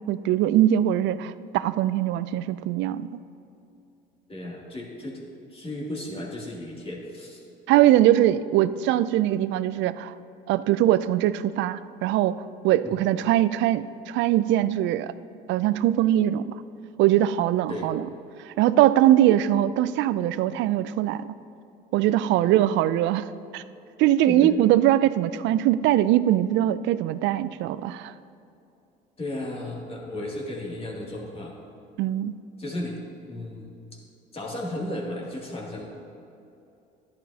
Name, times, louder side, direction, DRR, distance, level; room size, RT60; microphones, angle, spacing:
voice 1, 0.1-3.1 7.7-10.1 10.5-12.4 12.6-15.1 15.5-16.4 17.0-18.0 18.6-21.3 21.9-23.2 23.5-23.6 24.0-28.1 32.0-32.3, right 13 dB, 65° right, 15 dB, 0.4 m, -21 dB
voice 2, 4.3-5.2 5.5-7.4 12.8-13.0 17.7-17.9 22.3-22.4 24.3-24.6 29.2-31.5 32.6-33.0 33.3-34.0 34.3-35.9, left 1 dB, 30° left, -3 dB, 2.6 m, -34 dB
11.5 x 10.5 x 2.8 m, 2.7 s
supercardioid pair, 75°, 21 cm